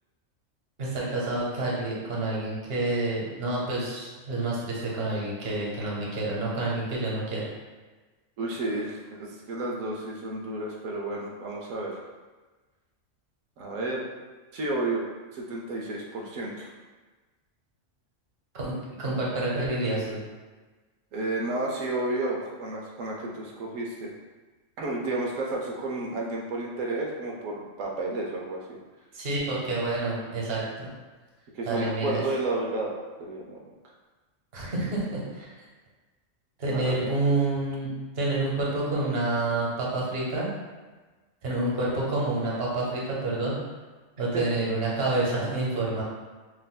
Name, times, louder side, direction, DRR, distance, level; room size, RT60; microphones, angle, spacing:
voice 1, 0.8-7.5 18.5-20.2 29.1-30.9 31.7-32.2 34.5-35.5 36.6-37.9 38.2-40.6 41.4-43.6 44.2-46.0, right 2 dB, 55° right, -4 dB, 1.1 m, -28 dB
voice 2, 8.4-12.0 13.6-14.0 14.5-15.0 15.3-16.7 21.1-24.1 24.8-28.7 31.5-32.9 33.2-33.6 36.7-37.0 44.3-44.4, right 2 dB, 90° right, -2 dB, 1.1 m, -31 dB
6.0 x 2.5 x 2.2 m, 1.3 s
omnidirectional pair, 1.3 m